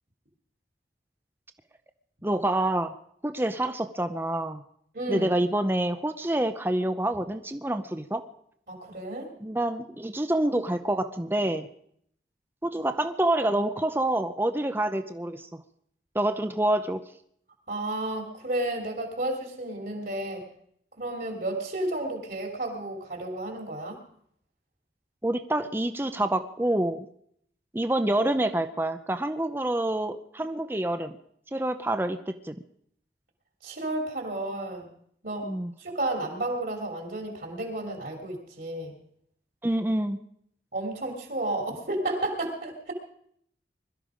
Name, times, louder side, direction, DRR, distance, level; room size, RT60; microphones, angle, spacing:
voice 1, 2.2-3.0 3.2-4.6 5.1-8.2 9.4-11.7 12.6-15.6 16.1-17.0 25.2-27.1 27.7-31.2 31.5-32.5 35.4-35.7 39.6-40.2, right 1 dB, 10° right, 9 dB, 0.6 m, -27 dB
voice 2, 4.9-5.3 8.7-9.3 17.7-20.4 21.0-24.0 33.6-34.9 35.2-35.5 35.8-38.9 40.7-42.9, right 1 dB, 55° right, 1 dB, 3.0 m, -32 dB
21.5 x 13.0 x 5.1 m, 0.68 s
head